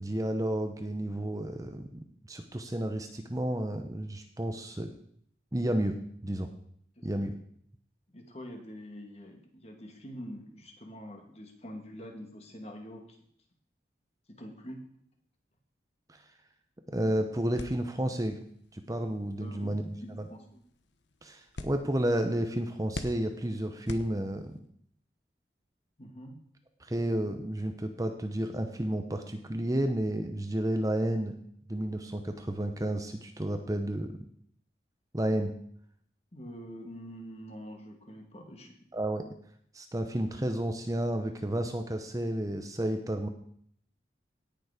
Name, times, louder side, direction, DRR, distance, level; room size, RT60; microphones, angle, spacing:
voice 1, 0.0-4.9 5.5-6.0 6.2-6.5 7.0-7.4 16.1-16.2 16.9-18.4 18.7-20.3 21.2-24.6 26.8-31.3 31.7-34.1 35.1-35.5 38.9-39.2 39.7-43.3, right 1 dB, 20° right, 6 dB, 0.8 m, -31 dB
voice 2, 8.1-13.2 14.3-14.8 19.4-20.6 26.0-26.4 36.3-38.7, equal, 35° left, 3 dB, 2.1 m, -45 dB
sound 1, 17.6-24.7, left 2 dB, 85° left, 1.0 m, -47 dB
17.5 x 7.0 x 5.0 m, 0.65 s
head